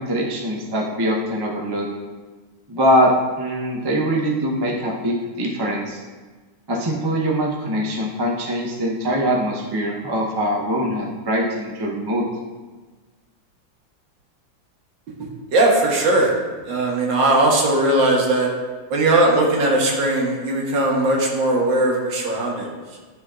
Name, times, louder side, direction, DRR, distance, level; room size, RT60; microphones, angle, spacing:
voice 1, 0.0-1.9 2.7-6.0 6.7-12.2, equal, 40° right, -2 dB, 0.3 m, -22 dB
voice 2, 15.5-16.3 16.6-18.5 18.9-22.7, right 2 dB, 90° right, -2 dB, 1.9 m, -19 dB
11.0 x 4.2 x 2.4 m, 1.4 s
omnidirectional pair, 2.0 m